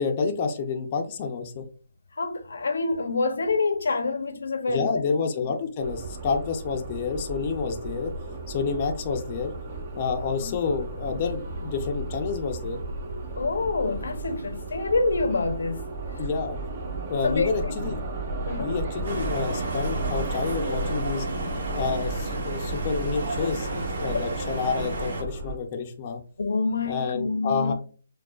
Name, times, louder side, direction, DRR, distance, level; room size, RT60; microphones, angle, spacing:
voice 1, 0.0-1.6 4.7-8.1 8.5-9.5 9.9-12.8 16.2-16.6 17.1-18.1 18.6-21.3 21.7-26.2 26.9-27.7, left 5 dB, 30° left, 0.5 m, -29 dB
voice 2, 2.2-5.1 10.4-10.6 13.4-15.8 17.2-17.5 18.5-18.7 24.1-24.2 26.4-27.7, left 3 dB, 80° left, 0.7 m, -26 dB
sound 1, 5.8-25.6, right 2 dB, 40° right, 1.1 m, -34 dB
sound 2, 19.0-25.2, right 2 dB, 55° right, 1.8 m, -32 dB
6.1 x 2.3 x 2.3 m
hypercardioid pair, 160°, 0 cm